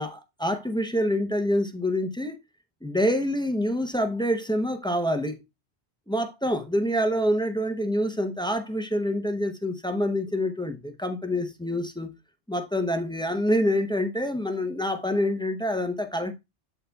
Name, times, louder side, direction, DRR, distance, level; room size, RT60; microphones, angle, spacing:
voice 1, 0.0-2.4 2.8-5.4 6.1-12.1 12.5-16.3, equal, 5° left, 0.5 m, -26 dB
11.5 x 4.0 x 2.2 m
omnidirectional pair, 1.1 m